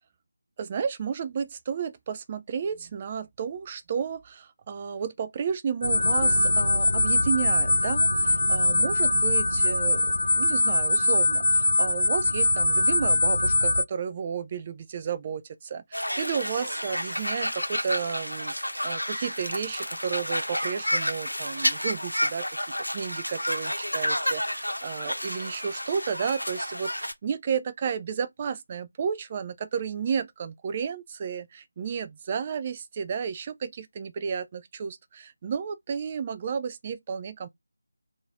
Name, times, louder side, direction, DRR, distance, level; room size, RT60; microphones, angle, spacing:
voice 1, 0.6-22.4 22.9-37.5, right 6 dB, 25° right, 0.3 m, -32 dB
sound 1, 5.8-13.8, left 2 dB, 65° left, 0.3 m, -22 dB
sound 2, 15.9-27.1, equal, 85° left, 0.8 m, -30 dB
3.1 x 2.6 x 3.4 m
figure-of-eight pair, 160°, 0 cm